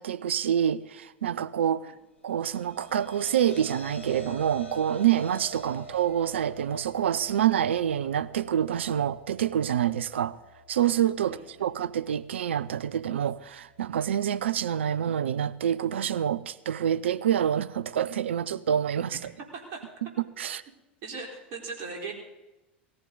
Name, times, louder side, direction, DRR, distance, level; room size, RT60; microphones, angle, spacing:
voice 1, 0.0-1.9 2.2-10.4 10.7-19.2 20.0-20.1 20.4-20.6, right 10 dB, 75° right, 17 dB, 0.6 m, -27 dB
sound 1, 2.2-14.6, equal, 90° left, 1.5 m, -47 dB
voice 2, 11.2-11.7 19.5-19.8 21.0-22.1, right 4 dB, 50° right, 1 dB, 4.1 m, -39 dB
18.5 x 14.5 x 4.0 m, 1.0 s
figure-of-eight pair, 85°, 6 cm